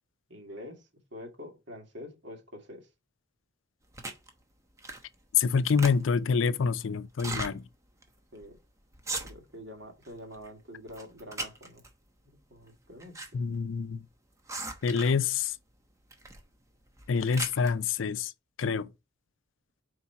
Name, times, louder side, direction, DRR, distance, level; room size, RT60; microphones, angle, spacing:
voice 1, 0.3-2.9 8.3-8.6 9.2-11.8 12.2-13.4, left 1 dB, 65° right, 1.9 m, -46 dB
sound 1, 3.9-4.3 4.8-5.1 5.4-6.3 7.1-7.5 8.0-8.1 8.4-8.6 8.9-9.6 10.0-10.5 10.9-11.9 12.7-13.3 13.5-13.6 14.5-15.3 16.1-16.4 16.9-17.7, right 2 dB, 15° right, 0.9 m, -38 dB
voice 2, 5.3-7.6 13.3-14.0 14.8-15.5 17.1-18.3 18.6-18.9, left 5 dB, 80° left, 0.5 m, -26 dB
4.7 x 4.3 x 5.7 m
head